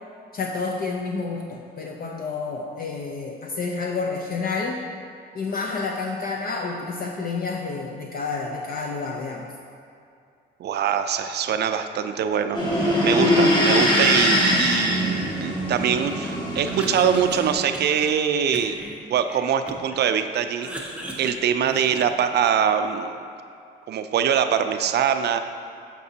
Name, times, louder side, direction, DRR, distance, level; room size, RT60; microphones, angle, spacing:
voice 1, 0.3-4.8 5.3-9.5, left 4 dB, 50° left, 1 dB, 0.5 m, -29 dB
voice 2, 10.6-18.8 19.1-20.7 21.2-23.2 23.9-25.4, right 8 dB, 55° right, 8 dB, 0.4 m, -23 dB
sound 1, 12.5-17.5, equal, 20° left, 1.4 m, -22 dB
Cough, 16.6-18.1 18.5-20.0 20.3-22.2, right 1 dB, 5° right, 0.7 m, -38 dB
6.6 x 6.0 x 2.7 m, 2.4 s
cardioid pair, 90°, 20 cm